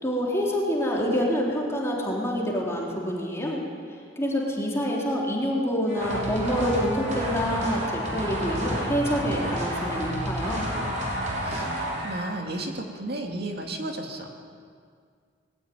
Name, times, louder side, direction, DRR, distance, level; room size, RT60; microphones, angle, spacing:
voice 1, 0.0-3.6 4.2-10.7, equal, 15° left, -3 dB, 3.7 m, -27 dB
sound 1, 5.9-12.4, right 1 dB, 40° right, 5.8 m, -30 dB
voice 2, 11.4-14.3, right 1 dB, 60° right, 2 dB, 2.5 m, -33 dB
20.5 x 15.0 x 9.4 m, 2.1 s
head